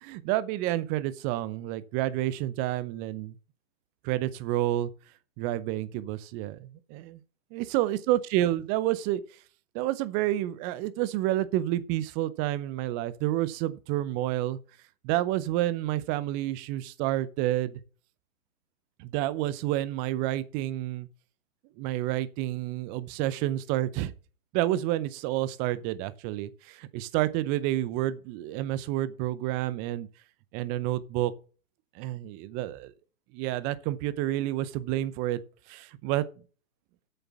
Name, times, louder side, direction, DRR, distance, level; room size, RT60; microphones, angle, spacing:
voice 1, 0.0-3.4 4.0-4.9 5.4-7.2 7.5-9.2 9.7-14.6 15.0-17.8 19.0-21.1 21.8-24.1 24.5-30.1 30.5-31.3 31.9-32.9 33.3-35.4 35.7-36.2, right 14 dB, 20° right, 0.6 m, -29 dB
8.3 x 6.7 x 7.2 m
hypercardioid pair, 130°, 41 cm